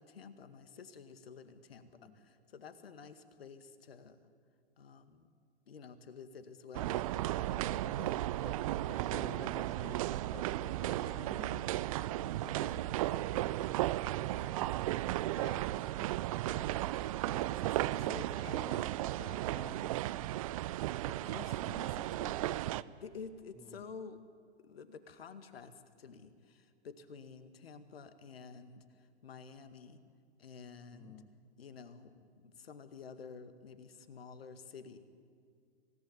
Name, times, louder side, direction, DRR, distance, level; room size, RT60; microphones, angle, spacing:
voice 1, 0.0-4.2 4.8-5.3 5.7-8.5 10.8-11.9 12.4-12.8 13.1-13.5 15.4-15.7 16.5-16.9 17.2-19.9 21.0-22.6 23.0-24.2 24.6-30.0 30.4-31.2 31.6-35.0, left 5 dB, 60° left, 10 dB, 2.1 m, -51 dB
sound 1, 6.7-22.8, right 15 dB, 30° right, 0.5 m, -35 dB
voice 2, 8.4-14.7 23.6-23.9 30.9-31.3, left 3 dB, 10° left, 8 dB, 1.3 m, -54 dB
26.0 x 18.0 x 9.9 m, 2.2 s
figure-of-eight pair, 115°, 34 cm